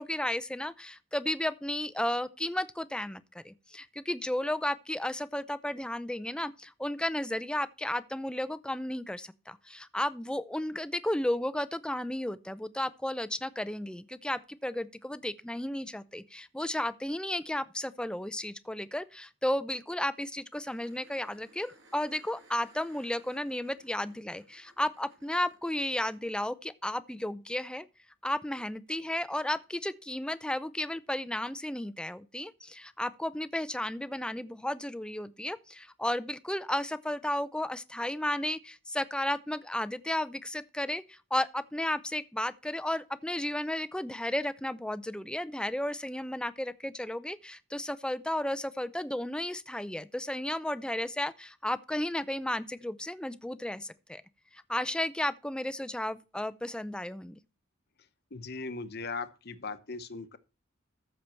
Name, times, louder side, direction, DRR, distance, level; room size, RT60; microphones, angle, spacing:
voice 1, 0.0-27.9 28.2-54.2 54.5-57.4, left 1 dB, 5° left, 0.5 m, -33 dB
sound 1, 20.6-26.2 28.9-29.0, right 1 dB, 65° right, 6.3 m, -60 dB
voice 2, 58.3-60.4, left 4 dB, 55° left, 1.0 m, -38 dB
14.0 x 6.7 x 4.4 m
head